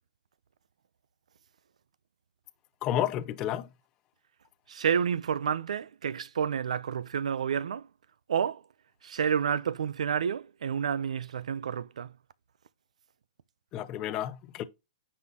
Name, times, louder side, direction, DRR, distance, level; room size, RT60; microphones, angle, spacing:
voice 1, 2.8-3.7 13.7-14.6, left 11 dB, 20° left, 0.5 m, -31 dB
voice 2, 4.7-7.9 8.3-8.6 9.0-12.1, right 7 dB, 80° right, 0.6 m, -29 dB
9.7 x 5.6 x 2.9 m
hypercardioid pair, 175°, 3 cm